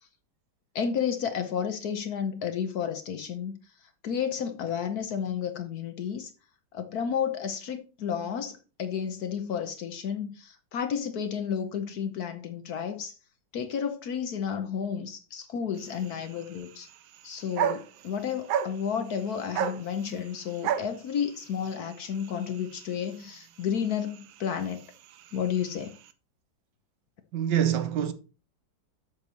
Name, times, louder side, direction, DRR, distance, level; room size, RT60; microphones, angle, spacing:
voice 1, 0.7-3.5 4.0-6.3 6.7-13.1 13.5-16.9 17.2-24.8 25.3-26.0, left 7 dB, 60° left, 1.1 m, -32 dB
sound 1, 15.8-26.1, right 9 dB, 85° right, 1.5 m, -36 dB
voice 2, 27.3-28.1, right 9 dB, 70° right, 1.3 m, -25 dB
8.1 x 6.6 x 4.1 m
omnidirectional pair, 2.1 m